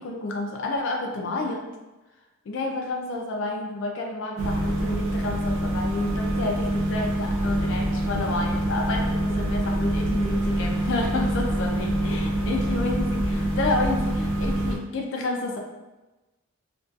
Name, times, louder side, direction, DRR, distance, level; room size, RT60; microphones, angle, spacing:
voice 1, 0.0-1.7 2.5-15.6, left 2 dB, 55° left, 1 dB, 0.3 m, -30 dB
sound 1, 4.4-14.8, right 1 dB, 70° right, 0.4 m, -25 dB
2.5 x 2.2 x 2.3 m, 1.1 s
head